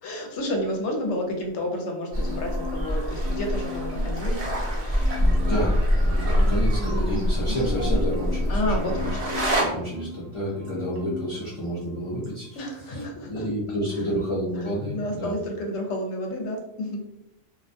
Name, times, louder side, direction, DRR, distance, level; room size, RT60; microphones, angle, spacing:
voice 1, 0.0-4.4 8.5-9.3 12.6-13.4 14.9-17.0, left 1 dB, 75° left, 2 dB, 0.9 m, -30 dB
sound 1, 2.1-9.6, equal, 40° right, 0.6 m, -24 dB
Marimba xylophone, 2.2-2.9 3.2-4.6 5.0-5.7 6.1-10.3 10.6-11.3 11.7-11.9, left 2 dB, 70° right, 0.9 m, -38 dB
voice 2, 5.2-9.1 9.5-15.3, equal, 40° left, -8 dB, 0.4 m, -30 dB
2.3 x 2.1 x 2.6 m, 0.85 s
omnidirectional pair, 1.2 m